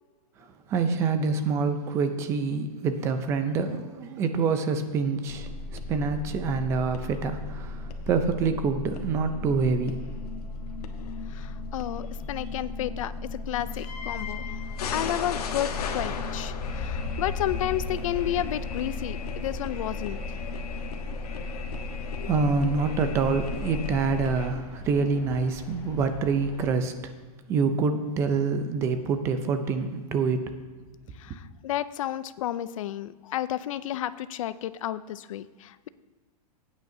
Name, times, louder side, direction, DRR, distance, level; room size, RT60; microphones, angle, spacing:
voice 1, 0.7-10.0 22.2-27.1 27.5-30.5, right 4 dB, 15° right, 9 dB, 0.4 m, -26 dB
sound 1, 5.3-24.5, left 3 dB, 90° left, 1.2 m, -34 dB
voice 2, 11.3-13.1 13.5-14.6 14.9-20.2 22.2-22.3 31.2-35.9, left 12 dB, 60° left, 15 dB, 0.5 m, -32 dB
sound 2, 14.0-26.7, left 3 dB, 45° left, 1.3 m, -44 dB
16.0 x 9.1 x 2.7 m, 1.4 s
supercardioid pair, 170°, 19 cm